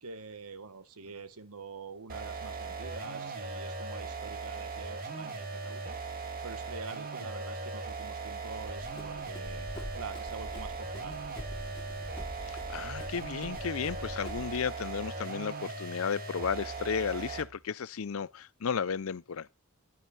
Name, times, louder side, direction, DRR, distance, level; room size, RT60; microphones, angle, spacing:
voice 1, 0.0-5.9 6.4-9.7 10.0-11.2, right 4 dB, 80° right, 1.2 m, -46 dB
sound 1, 2.1-17.6, right 3 dB, 40° right, 2.2 m, -39 dB
Run, 8.6-14.6, left 1 dB, 25° left, 2.5 m, -45 dB
voice 2, 12.7-19.5, left 6 dB, 65° left, 0.5 m, -33 dB
11.0 x 10.0 x 4.1 m
head